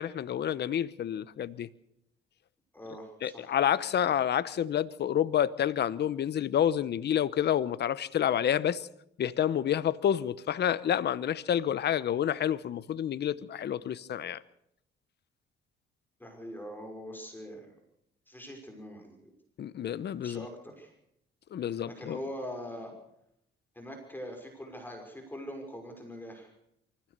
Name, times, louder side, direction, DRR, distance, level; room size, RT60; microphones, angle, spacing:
voice 1, 0.0-1.7 3.2-8.9 9.2-14.4 19.6-20.5 21.5-22.2, left 10 dB, 60° left, 0.9 m, -29 dB
voice 2, 2.7-3.6 16.2-17.7 18.3-19.3 20.2-20.9 21.8-22.9 23.8-26.5, equal, 10° left, 5.8 m, -42 dB
24.0 x 16.0 x 6.8 m
cardioid pair, 90°, 20 cm